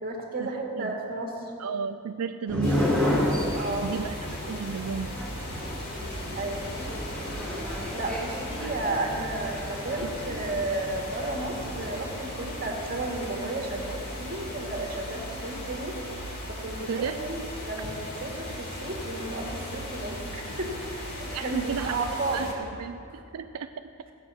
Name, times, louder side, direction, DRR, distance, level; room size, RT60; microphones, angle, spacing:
voice 1, 0.0-1.5 3.5-3.9 6.3-6.6 7.9-16.0 16.5-22.7 23.1-23.2, right 2 dB, 45° right, 0 dB, 1.9 m, -33 dB
voice 2, 1.6-2.9 3.8-4.1 4.5-5.3 10.0-10.1 16.9-17.2 21.3-22.1 22.3-23.9, right 6 dB, 80° right, 8 dB, 0.4 m, -33 dB
sound 1, 2.5-11.9, left 1 dB, 5° left, 1.6 m, -32 dB
sound 2, 2.6-22.5, left 1 dB, 45° left, 2.5 m, -37 dB
16.5 x 8.2 x 6.1 m, 2.6 s
head